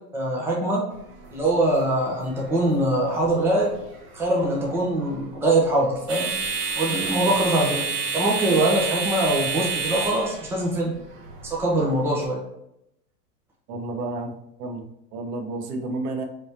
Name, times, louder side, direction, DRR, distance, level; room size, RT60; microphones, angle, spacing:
voice 1, 0.1-0.9 1.3-3.7 4.1-6.3 6.8-7.8 8.1-10.9 11.4-12.4, right 1 dB, 5° right, -3 dB, 0.5 m, -23 dB
sound 1, 0.9-12.2, right 4 dB, 25° right, 0.9 m, -31 dB
voice 2, 13.7-16.3, right 2 dB, 70° right, 5 dB, 1.0 m, -31 dB
4.4 x 3.4 x 2.8 m, 0.80 s
supercardioid pair, 140°, 50 cm